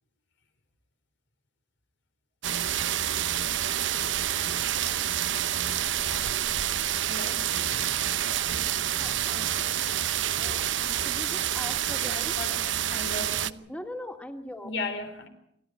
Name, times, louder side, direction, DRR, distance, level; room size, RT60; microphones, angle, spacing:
sound 1, 2.4-13.5, right 11 dB, 80° right, 0.8 m, -28 dB
voice 1, 7.0-7.8 10.9-11.5 12.1-13.7 14.6-15.3, left 2 dB, 70° left, 3.8 m, -38 dB
voice 2, 9.0-9.9 10.4-12.3 13.7-14.7, left 1 dB, 10° left, 2.2 m, -41 dB
27.0 x 14.0 x 9.1 m
head